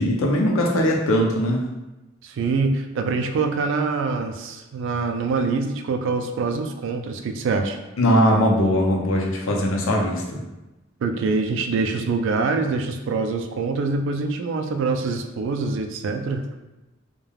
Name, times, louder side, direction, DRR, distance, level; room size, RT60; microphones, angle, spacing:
voice 1, 0.0-1.7 8.0-10.4, equal, 75° left, -1 dB, 0.5 m, -20 dB
voice 2, 2.2-7.8 11.0-16.4, right 4 dB, 65° right, 5 dB, 0.3 m, -24 dB
3.2 x 2.2 x 2.3 m, 1.0 s
head